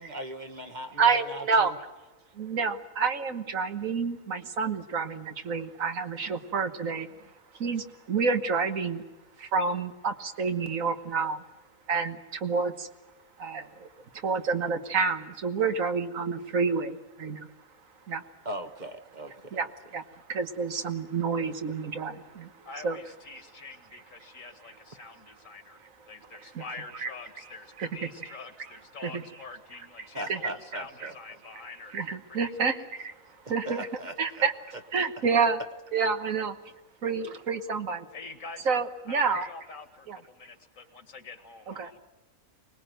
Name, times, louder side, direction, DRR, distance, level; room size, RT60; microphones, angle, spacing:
voice 1, 0.0-1.7 3.9-4.0 18.4-19.6 30.1-31.1 33.6-34.5, right 1 dB, 35° right, 7 dB, 1.2 m, -39 dB
voice 2, 1.0-1.7 2.3-7.1 7.5-9.0 9.4-11.4 11.9-12.9 13.4-13.9 14.1-17.5 18.1-18.2 19.3-23.0 23.2-24.0 26.4-29.5 30.0-31.1 31.5-31.6 31.9-33.1 33.4-35.6 35.9-36.6 37.0-38.1 38.6-39.5 40.1-40.2 41.7-41.9, right 5 dB, 70° right, 8 dB, 1.7 m, -29 dB
voice 3, 22.6-25.8 26.1-31.9 32.3-32.9 38.1-42.0, left 3 dB, 65° left, 8 dB, 2.2 m, -46 dB
24.0 x 19.5 x 9.1 m, 1.1 s
omnidirectional pair, 1.5 m